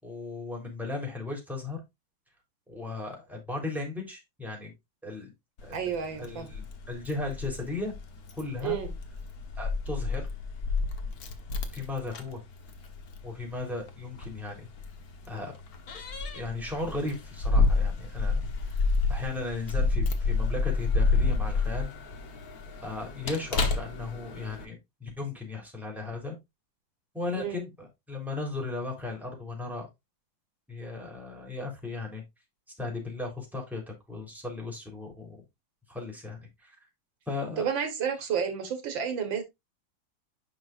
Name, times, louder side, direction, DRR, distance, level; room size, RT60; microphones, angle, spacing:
voice 1, 0.0-1.8 2.7-4.7 5.0-5.3 5.6-7.9 8.4-8.8 9.6-10.3 11.7-12.4 13.2-14.7 15.3-15.5 16.3-18.4 19.1-21.9 22.8-24.8 25.0-26.4 27.1-29.9 30.7-32.2 32.8-35.4 35.9-36.8 37.3-37.7, left 3 dB, ahead, 3.6 m, -36 dB
Keys jangling, 5.6-24.6, left 3 dB, 55° left, 1.6 m, -30 dB
voice 2, 5.7-6.5 8.6-8.9 27.4-27.7 37.6-39.4, right 7 dB, 75° right, 2.1 m, -31 dB
10.5 x 5.8 x 2.5 m
omnidirectional pair, 2.1 m